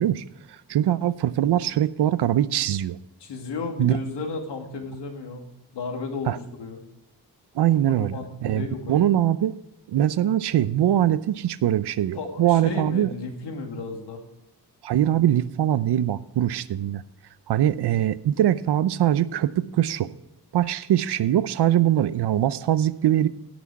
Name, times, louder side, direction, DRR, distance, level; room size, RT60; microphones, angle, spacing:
voice 1, 0.0-3.0 3.8-4.0 6.3-6.4 7.5-9.6 9.9-13.1 14.8-17.0 17.5-20.1 20.5-23.3, right 12 dB, 75° right, 16 dB, 0.7 m, -22 dB
voice 2, 3.2-6.8 7.7-9.0 12.2-14.2, left 4 dB, 85° left, 4 dB, 2.3 m, -34 dB
17.0 x 6.2 x 4.7 m, 0.84 s
wide cardioid pair, 170°, 40 cm